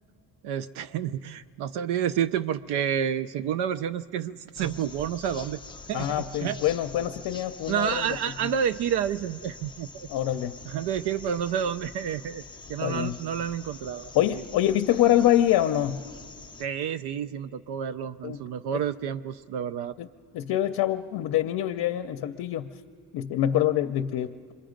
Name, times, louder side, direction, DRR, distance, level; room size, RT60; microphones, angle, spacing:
voice 1, 0.4-5.6 5.9-6.6 7.7-10.1 10.6-12.4 12.7-14.4 16.6-19.9, right 9 dB, 85° right, 12 dB, 0.5 m, -29 dB
sound 1, 4.5-16.7, left 4 dB, 15° left, 0.5 m, -45 dB
voice 2, 5.9-8.2 10.1-10.5 12.8-13.2 14.1-16.0 18.2-18.4 18.7-18.8 20.0-20.1 20.3-22.7 23.1-24.5, left 12 dB, 65° left, 8 dB, 0.6 m, -25 dB
26.5 x 23.0 x 5.1 m, 2.2 s
cardioid pair, 165°, 38 cm